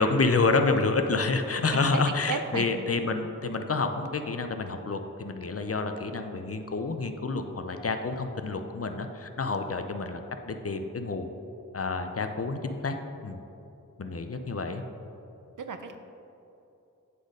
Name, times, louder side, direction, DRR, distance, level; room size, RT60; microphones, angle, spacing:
voice 1, 0.0-10.2 10.5-11.3 11.7-13.0 13.2-13.4 14.0-14.8, left 3 dB, 45° left, 6 dB, 0.6 m, -28 dB
voice 2, 1.7-2.0 2.3-2.7 15.6-16.0, right 5 dB, 65° right, 7 dB, 0.6 m, -33 dB
8.4 x 4.0 x 5.0 m, 2.8 s
wide cardioid pair, 50°, 33 cm